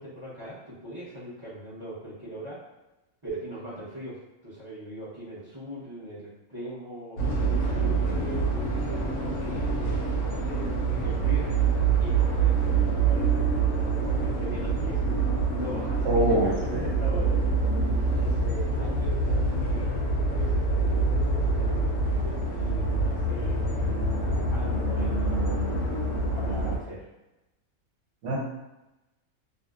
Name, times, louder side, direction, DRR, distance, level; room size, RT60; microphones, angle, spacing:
voice 1, 0.0-2.6 3.2-4.2 4.4-8.4 8.8-10.7 11.0-11.7 12.0-15.0 15.5-17.4 17.9-20.0 20.2-23.9 24.5-25.6 26.3-27.1, right 1 dB, 25° right, -12 dB, 0.5 m, -40 dB
sound 1, 7.2-26.8, right 3 dB, 70° left, 0.9 m, -26 dB
voice 2, 16.0-16.8 28.2-28.4, equal, 60° right, -4 dB, 1.0 m, -24 dB
2.7 x 2.0 x 2.3 m, 0.97 s
omnidirectional pair, 1.5 m